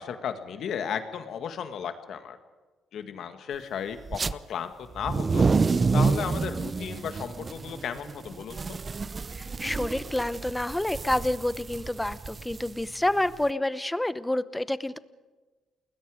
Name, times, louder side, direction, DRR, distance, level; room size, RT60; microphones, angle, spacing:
voice 1, 0.0-2.4 2.9-5.5 5.9-8.8, left 8 dB, 65° left, 8 dB, 1.9 m, -34 dB
sound 1, 4.1-4.3 4.9-13.4, right 4 dB, 30° right, 0.6 m, -28 dB
voice 2, 9.3-15.0, left 1 dB, 10° left, 15 dB, 0.8 m, -28 dB
29.5 x 20.5 x 5.0 m, 1.3 s
cardioid pair, 115°, 0 cm